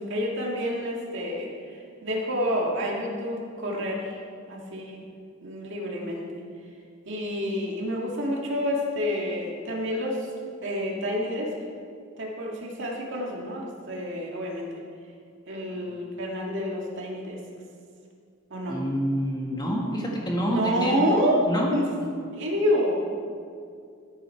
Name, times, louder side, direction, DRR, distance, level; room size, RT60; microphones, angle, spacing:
voice 1, 0.0-1.5 2.0-4.2 4.5-5.0 5.4-6.4 7.1-10.3 10.6-11.5 12.2-14.7 15.5-17.4 18.5-18.8 20.5-21.9 22.3-23.1, equal, 65° right, -2 dB, 2.0 m, -28 dB
voice 2, 15.7-16.0 18.7-21.0 21.5-21.7, equal, 20° left, -2 dB, 1.7 m, -28 dB
13.5 x 9.2 x 4.5 m, 2.3 s
head